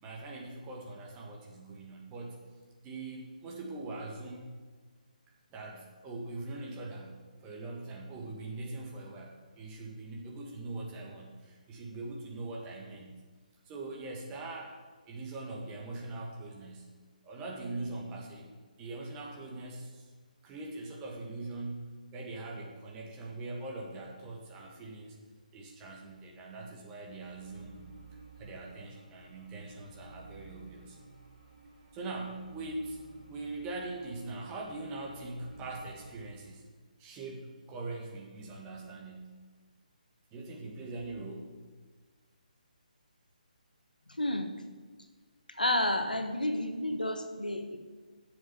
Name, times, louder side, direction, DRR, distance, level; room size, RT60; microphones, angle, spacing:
voice 1, 0.0-2.4 2.8-4.5 5.5-13.2 13.7-14.8 15.1-16.9 17.2-18.5 18.8-20.1 20.4-25.2 25.5-27.9 28.4-31.0 31.9-33.0 33.3-36.6 37.0-39.4 40.3-41.6, right 2 dB, 15° right, -1 dB, 1.7 m, -42 dB
sound 1, 27.0-36.4, right 3 dB, 45° right, 3.7 m, -54 dB
voice 2, 44.1-44.5 45.5-47.8, left 1 dB, 80° left, 6 dB, 1.5 m, -31 dB
9.0 x 7.3 x 8.4 m, 1.4 s
figure-of-eight pair, 140°, 5 cm